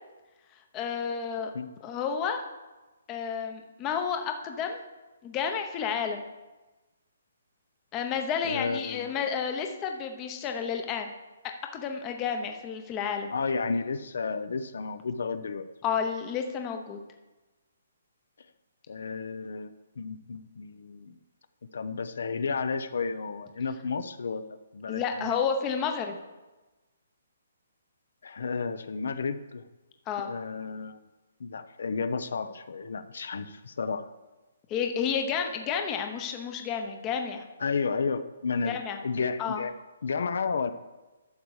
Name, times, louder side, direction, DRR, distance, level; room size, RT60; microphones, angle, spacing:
voice 1, 0.7-1.5 1.8-2.4 3.1-4.8 5.2-6.2 7.9-11.1 11.7-13.3 15.8-17.0 24.9-26.2 30.1-30.3 34.7-37.4 38.6-39.0 39.4-39.6, left 7 dB, 15° left, 5 dB, 0.8 m, -31 dB
voice 2, 8.4-9.2 13.3-15.7 18.9-19.7 20.0-21.2 21.7-25.4 28.2-29.6 30.2-31.0 31.4-34.0 37.6-38.8 39.0-39.7 40.0-40.7, left 5 dB, 65° left, 11 dB, 0.7 m, -32 dB
12.0 x 7.2 x 4.8 m, 1.1 s
hypercardioid pair, 170°, 0 cm